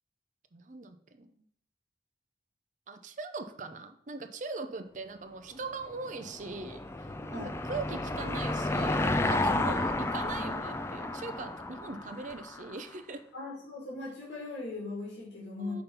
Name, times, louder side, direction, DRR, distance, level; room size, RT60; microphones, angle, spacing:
voice 1, 0.5-1.4 2.9-13.3 15.6-15.8, right 3 dB, 40° right, 7 dB, 0.6 m, -41 dB
Car passing by / Engine, 5.9-12.8, left 2 dB, 15° left, 0.3 m, -32 dB
voice 2, 13.3-15.8, left 3 dB, 80° left, -7 dB, 2.2 m, -39 dB
5.2 x 4.3 x 5.5 m, 0.66 s
head